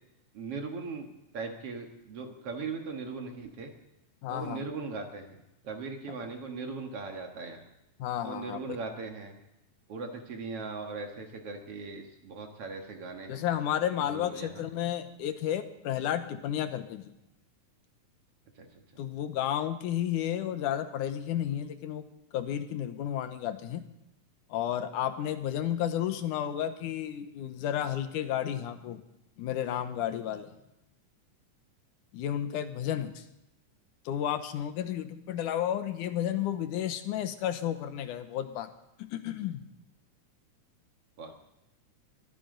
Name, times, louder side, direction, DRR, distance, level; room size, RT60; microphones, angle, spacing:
voice 1, 0.3-3.7 4.3-7.6 8.2-9.4 9.9-13.4 14.0-14.6 18.6-18.8 41.2-41.3, right 4 dB, 55° right, 3 dB, 2.4 m, -39 dB
voice 2, 4.2-4.6 8.0-8.6 13.3-17.1 19.0-22.1 22.3-23.8 24.5-29.0 29.4-30.5 32.1-33.2 34.1-38.7 39.0-39.6, left 10 dB, 80° left, 10 dB, 2.5 m, -32 dB
22.0 x 14.5 x 3.9 m, 0.89 s
omnidirectional pair, 3.6 m